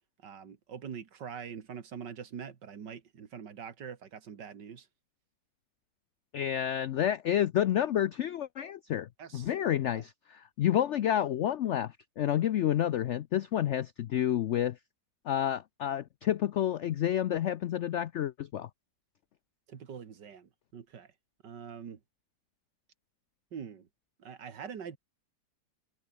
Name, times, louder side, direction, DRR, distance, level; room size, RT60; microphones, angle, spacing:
voice 1, 0.2-4.9 9.2-9.5 9.9-10.0 19.7-21.1 21.4-22.0 23.5-23.9 24.2-25.0, right 7 dB, 80° right, 2.4 m, -44 dB
voice 2, 6.3-14.8 15.3-18.7, left 11 dB, 80° left, 0.6 m, -29 dB
omnidirectional pair, 1.9 m